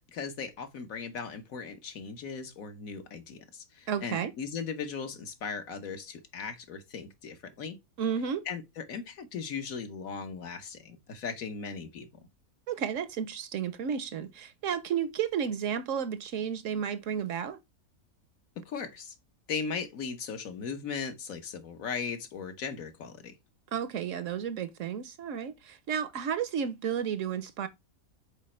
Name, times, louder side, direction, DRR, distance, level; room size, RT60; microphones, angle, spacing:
voice 1, 0.1-7.8 8.5-12.1 18.7-19.1 19.5-23.3, left 5 dB, 70° left, 1.4 m, -38 dB
voice 2, 3.9-4.3 8.0-8.4 12.7-17.6 23.7-27.7, right 8 dB, 65° right, 1.0 m, -32 dB
5.4 x 4.3 x 4.2 m
omnidirectional pair, 1.5 m